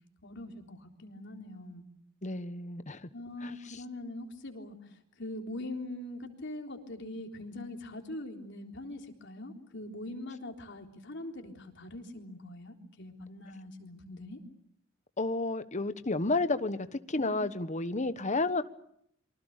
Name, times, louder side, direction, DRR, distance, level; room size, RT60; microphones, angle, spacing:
voice 1, 0.2-1.8 3.1-14.4 17.2-17.3, left 1 dB, 60° left, 3 dB, 3.8 m, -42 dB
voice 2, 2.2-3.1 3.4-3.8 15.2-18.6, left 2 dB, 35° left, 11 dB, 1.3 m, -31 dB
27.5 x 24.5 x 6.7 m, 0.72 s
head